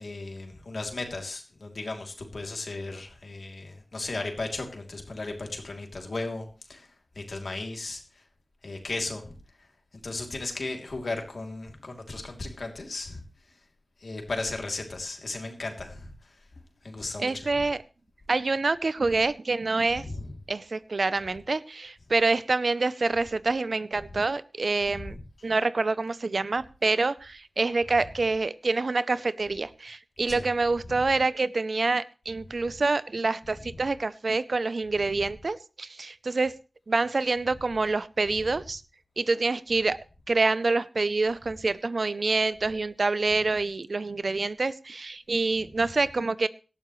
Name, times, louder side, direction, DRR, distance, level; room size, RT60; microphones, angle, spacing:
voice 1, 0.0-6.9 7.1-8.2 8.6-9.4 10.0-13.2 14.0-16.4 16.8-17.6 19.9-20.4 24.9-25.2 27.9-28.0 30.3-30.5 30.9-31.1 32.6-32.7 33.5-33.8 34.9-35.3 37.5-37.6 38.3-38.6, left 2 dB, 80° left, 3 dB, 3.0 m, -36 dB
voice 2, 17.2-17.8 18.3-20.0 20.5-25.2 25.4-36.5 36.9-38.8 39.2-40.0 40.3-46.5, right 3 dB, 75° right, 17 dB, 0.6 m, -26 dB
18.0 x 12.5 x 3.2 m, 0.34 s
wide cardioid pair, 50°, 0 cm